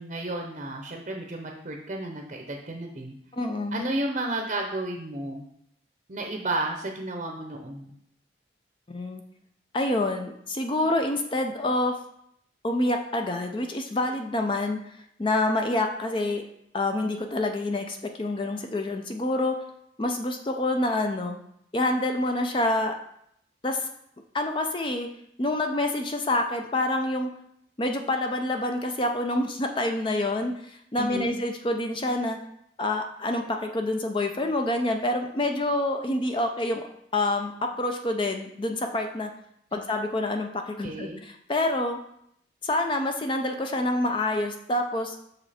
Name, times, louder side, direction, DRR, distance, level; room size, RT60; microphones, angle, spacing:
voice 1, 0.0-3.2 3.7-5.5 6.1-7.9 30.9-31.4 39.7-39.8 40.8-41.2, right 2 dB, 40° right, 2 dB, 0.7 m, -32 dB
voice 2, 3.3-3.8 8.9-9.2 9.7-12.0 12.6-16.4 16.7-19.6 20.0-21.4 21.7-23.0 23.6-23.9 24.3-25.1 25.4-27.3 27.8-32.4 32.8-36.9 37.1-39.3 39.7-42.0 42.6-45.2, left 1 dB, 25° left, 5 dB, 0.5 m, -27 dB
6.3 x 5.0 x 4.2 m, 0.73 s
head